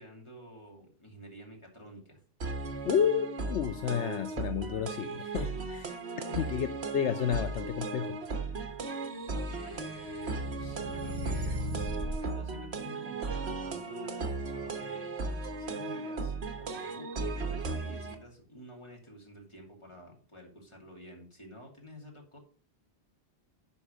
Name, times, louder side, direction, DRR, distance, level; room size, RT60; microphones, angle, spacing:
voice 1, 0.0-2.2 6.0-6.5 9.5-14.1 14.5-22.4, equal, 25° left, 2.7 m, -50 dB
sound 1, 2.4-18.1, right 3 dB, 60° right, 1.6 m, -36 dB
voice 2, 2.8-6.0 6.4-6.7 6.9-8.2, left 8 dB, 75° left, 0.9 m, -31 dB
sound 2, 9.3-12.3, right 1 dB, 25° right, 1.0 m, -37 dB
11.5 x 4.6 x 5.1 m
omnidirectional pair, 1.2 m